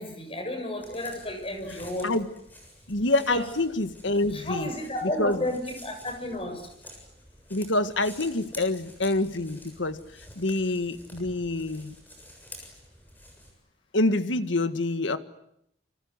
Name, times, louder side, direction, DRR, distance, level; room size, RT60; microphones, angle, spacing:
voice 1, 0.0-2.1 3.3-3.5 4.3-6.7 11.2-11.3, left 1 dB, 30° left, 5 dB, 7.2 m, -32 dB
sound 1, 0.8-13.5, left 1 dB, 10° left, 7.2 m, -49 dB
voice 2, 2.9-4.7 5.2-5.4 7.5-10.0 10.4-11.9 13.9-15.2, left 2 dB, 80° left, 10 dB, 1.8 m, -26 dB
28.0 x 25.5 x 8.2 m, 0.76 s
head